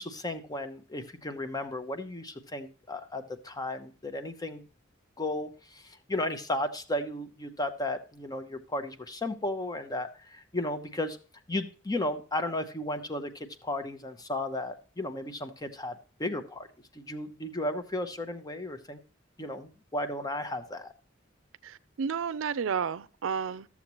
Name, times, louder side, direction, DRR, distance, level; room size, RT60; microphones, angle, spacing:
voice 1, 0.0-4.6 5.2-11.2 11.5-16.7 16.9-19.0 19.4-20.9, left 1 dB, 20° left, 0.7 m, -34 dB
voice 2, 21.6-23.7, right 6 dB, 85° right, 0.4 m, -31 dB
13.0 x 7.1 x 3.0 m
head